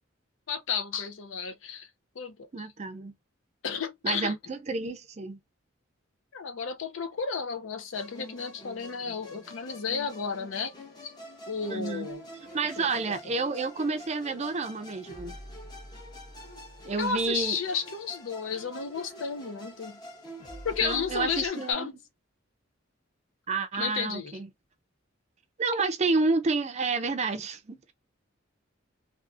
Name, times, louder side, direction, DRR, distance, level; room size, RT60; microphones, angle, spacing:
voice 1, 0.5-1.9 2.2-2.7 3.6-4.3 6.3-10.7 11.0-11.1 11.5-12.2 12.8-13.0 17.0-20.0 20.6-22.0 23.7-24.4, left 6 dB, 75° left, 0.6 m, -32 dB
voice 2, 2.5-3.1 4.0-5.4 11.7-12.1 12.5-15.4 16.8-17.6 20.8-21.9 23.5-24.5 25.6-27.9, right 3 dB, 35° right, 0.4 m, -30 dB
Musical instrument, 7.9-21.7, equal, 20° left, 0.7 m, -47 dB
sound 1, 12.1-21.5, equal, 45° left, 1.1 m, -51 dB
2.5 x 2.4 x 2.4 m
head